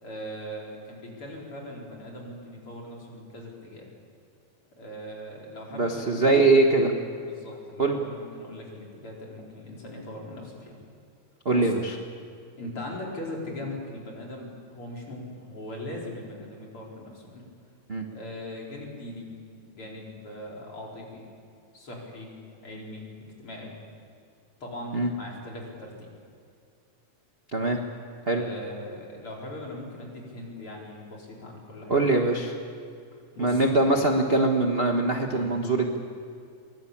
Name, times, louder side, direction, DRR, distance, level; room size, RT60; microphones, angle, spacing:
voice 1, 0.0-3.9 4.8-6.8 7.2-10.8 11.5-11.7 12.6-17.4 18.1-19.3 19.6-21.3 21.7-22.3 22.6-23.1 23.4-23.8 24.6-26.1 27.7-27.8 28.2-32.0 33.1-33.6 35.3-35.6, left 1 dB, 45° left, -2 dB, 5.3 m, -40 dB
voice 2, 5.7-6.9 7.8-8.0 11.4-11.9 17.9-18.1 24.9-25.1 27.5-27.8 28.3-28.4 31.9-32.5 33.4-36.0, right 2 dB, 50° right, 2 dB, 0.7 m, -22 dB
23.5 x 19.5 x 8.6 m, 2.4 s
omnidirectional pair, 3.5 m